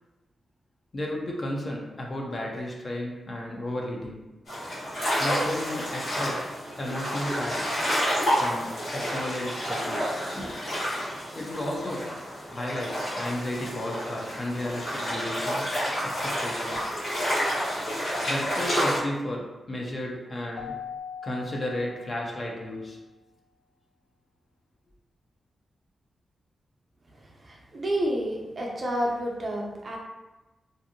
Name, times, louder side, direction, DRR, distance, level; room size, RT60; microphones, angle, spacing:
voice 1, 0.9-4.3 5.2-6.5 6.8-7.7 8.4-10.6 11.3-12.1 12.5-15.7 16.0-16.9 18.3-20.8 21.2-23.0, left 1 dB, 35° left, -1 dB, 0.5 m, -33 dB
sound 1, 4.5-19.0, equal, 70° left, 1.3 m, -29 dB
Keyboard (musical), 20.6-22.8, left 7 dB, 85° left, 0.3 m, -41 dB
voice 2, 27.1-30.0, equal, 40° right, -1 dB, 0.5 m, -30 dB
2.6 x 2.6 x 2.6 m, 1.1 s
wide cardioid pair, 100°, 0 cm